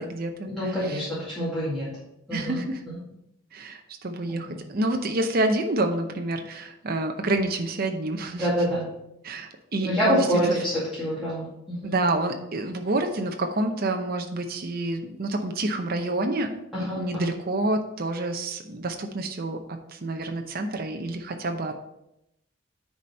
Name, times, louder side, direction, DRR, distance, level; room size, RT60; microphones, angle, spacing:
voice 1, 0.0-1.1 2.3-2.8 3.5-8.5 9.2-10.3 11.8-21.8, right 2 dB, 45° right, 4 dB, 0.7 m, -28 dB
voice 2, 0.5-1.9 2.3-2.6 4.5-4.6 8.4-8.9 9.8-12.0 16.7-17.3, equal, ahead, -11 dB, 2.2 m, -26 dB
9.6 x 4.3 x 4.3 m, 0.83 s
head